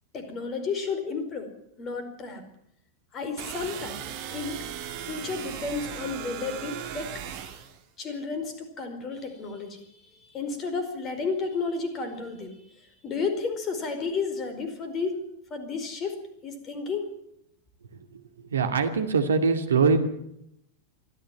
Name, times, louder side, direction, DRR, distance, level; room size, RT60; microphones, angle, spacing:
voice 1, 0.1-1.5 1.8-2.4 3.1-4.6 5.0-7.2 8.0-17.1, left 4 dB, 30° left, 8 dB, 4.8 m, -32 dB
sound 1, 3.4-7.8, right 9 dB, 50° right, 3.3 m, -37 dB
voice 2, 18.5-20.1, right 5 dB, 70° right, 7 dB, 2.2 m, -22 dB
24.0 x 14.5 x 9.2 m, 0.78 s
figure-of-eight pair, 90°, 0 cm